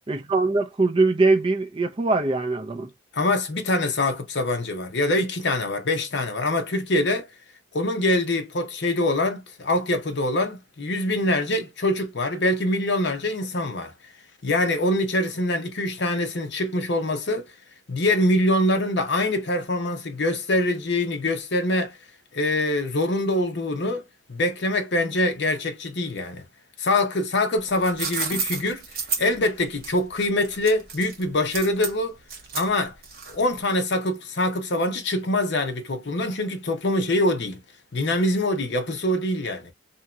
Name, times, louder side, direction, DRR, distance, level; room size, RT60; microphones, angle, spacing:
voice 1, 0.1-2.9, right 3 dB, 25° right, 0.5 m, -22 dB
voice 2, 3.1-7.3 7.7-13.9 14.4-17.5 17.9-22.0 22.3-24.0 24.3-26.4 26.8-28.8 29.2-32.2 32.5-32.9 33.3-37.6 37.9-39.7, left 1 dB, 55° left, 0.7 m, -24 dB
sound 1, 27.6-33.6, right 6 dB, 50° right, 0.9 m, -32 dB
2.9 x 2.7 x 2.3 m
head